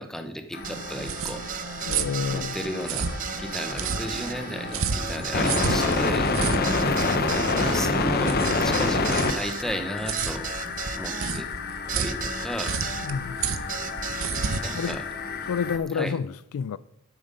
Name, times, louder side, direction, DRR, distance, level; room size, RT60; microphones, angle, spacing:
voice 1, 0.0-1.4 2.3-3.1 3.4-6.3 7.5-8.4 8.6-10.5 10.9-11.5 11.9-12.8 14.5-15.0 15.9-16.1, equal, ahead, 0.8 m, -34 dB
sound 1, 0.5-15.8, left 3 dB, 45° left, 0.8 m, -28 dB
sound 2, 0.6-13.1 13.7-15.0, right 8 dB, 35° right, 0.5 m, -36 dB
sound 3, 0.6-15.8, right 5 dB, 65° right, 0.7 m, -32 dB
voice 2, 1.9-2.6 13.0-13.4 14.7-15.0 15.5-16.8, left 6 dB, 85° left, 0.3 m, -30 dB
9.0 x 7.9 x 5.2 m
head